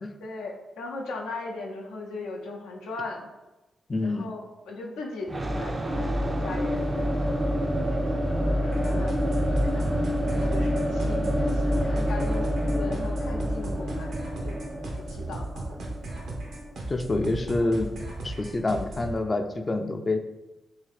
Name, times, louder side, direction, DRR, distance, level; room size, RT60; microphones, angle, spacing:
voice 1, 0.2-3.3 4.0-9.8 10.3-14.2 14.4-14.6 14.9-15.8, left 3 dB, 90° left, -1 dB, 0.5 m, -39 dB
voice 2, 3.9-4.2 16.9-17.9 18.2-20.2, left 2 dB, 35° left, 7 dB, 0.4 m, -27 dB
sound 1, 5.3-17.1, equal, 30° right, 0.4 m, -27 dB
sound 2, 8.7-19.2, right 2 dB, 75° right, 0.7 m, -36 dB
3.2 x 2.8 x 3.1 m, 1.0 s
supercardioid pair, 50°, 0 cm